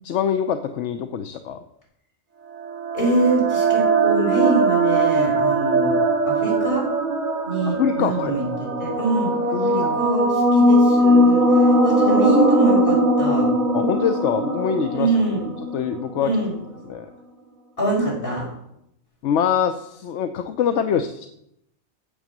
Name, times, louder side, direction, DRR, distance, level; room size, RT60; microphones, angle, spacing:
voice 1, 0.0-1.6 7.7-8.3 9.5-10.0 13.7-15.1 15.7-16.3 16.9-17.1 19.2-21.3, left 8 dB, 65° left, 8 dB, 0.9 m, -24 dB
sound 1, 2.5-16.2, right 1 dB, 90° right, 1.9 m, -20 dB
voice 2, 2.9-6.0 6.2-6.9 7.5-13.5 14.9-15.5 16.2-16.6 17.8-18.5, right 2 dB, 40° left, -4 dB, 5.5 m, -24 dB
8.9 x 7.5 x 7.2 m, 0.78 s
omnidirectional pair, 1.4 m